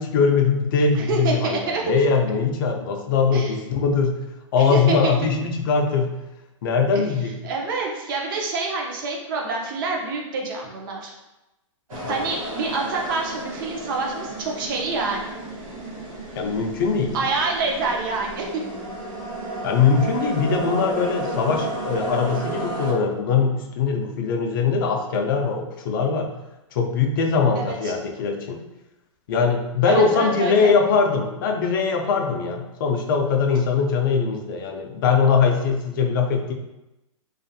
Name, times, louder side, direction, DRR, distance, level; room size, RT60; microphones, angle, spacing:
voice 1, 0.0-4.2 4.5-6.2 6.6-7.3 12.0-12.1 16.4-17.2 19.6-26.3 26.7-28.6 29.3-36.5, left 5 dB, 40° left, 3 dB, 0.4 m, -21 dB
voice 2, 0.9-1.8 3.3-3.6 4.7-5.1 6.9-7.0 7.4-11.1 12.1-15.4 17.1-18.6 27.5-27.9 29.9-30.7, right 3 dB, 40° right, 0 dB, 0.5 m, -27 dB
sound 1, 11.9-22.9, right 2 dB, 85° right, 1.0 m, -32 dB
2.4 x 2.4 x 2.6 m, 0.97 s
hypercardioid pair, 150°, 17 cm